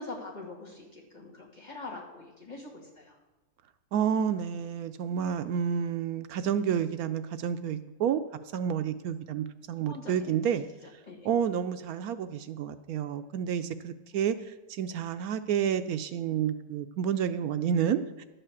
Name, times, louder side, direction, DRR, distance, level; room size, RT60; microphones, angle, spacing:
voice 1, 0.0-3.2 9.8-10.3 11.1-11.2, left 2 dB, 30° left, -4 dB, 2.7 m, -43 dB
voice 2, 3.9-8.2 8.5-10.7 11.2-18.2, right 8 dB, 75° right, 10 dB, 1.0 m, -30 dB
11.5 x 5.7 x 8.4 m, 1.0 s
omnidirectional pair, 1.6 m